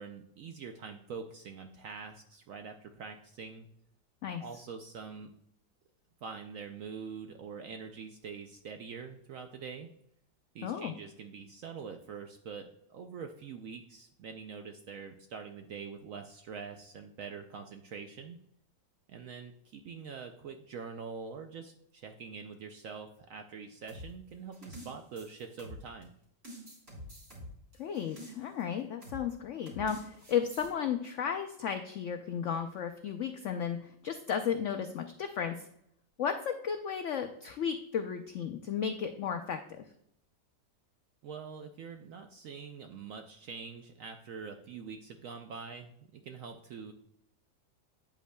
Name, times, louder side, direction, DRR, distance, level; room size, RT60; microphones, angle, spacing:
voice 1, 0.0-3.7 4.4-5.3 6.2-9.9 10.5-18.4 19.1-26.1 41.2-46.9, right 5 dB, 75° right, 5 dB, 0.7 m, -44 dB
voice 2, 4.2-4.6 10.6-10.9 27.8-35.7 36.2-39.8, left 7 dB, 90° left, 6 dB, 0.6 m, -34 dB
sound 1, 23.9-26.0 26.4-28.6 29.0-29.3 29.7-30.7, equal, 35° right, 2.9 m, -47 dB
8.7 x 8.1 x 2.2 m, 0.73 s
omnidirectional pair, 1.9 m